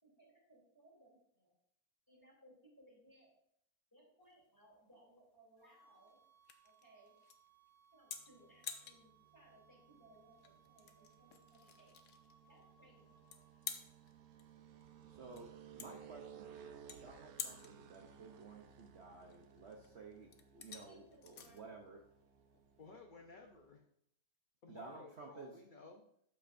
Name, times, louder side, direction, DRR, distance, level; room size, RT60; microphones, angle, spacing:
voice 1, 0.0-1.5 2.1-3.3 3.9-6.2 6.6-7.2 7.9-12.0 12.5-13.3 20.7-21.7, right 1 dB, 15° left, -4 dB, 3.1 m, -66 dB
sound 1, 4.2-23.0, left 7 dB, 70° left, 1.2 m, -53 dB
sound 2, 5.6-13.7, right 5 dB, 30° right, 2.6 m, -70 dB
sound 3, 8.2-23.7, right 8 dB, 80° right, 1.2 m, -60 dB
voice 2, 15.1-22.0 24.7-25.6, right 4 dB, 55° right, 1 dB, 1.0 m, -54 dB
voice 3, 22.8-23.8 24.6-26.1, left 3 dB, 45° left, 2 dB, 0.7 m, -56 dB
12.5 x 5.8 x 2.6 m, 0.71 s
omnidirectional pair, 1.6 m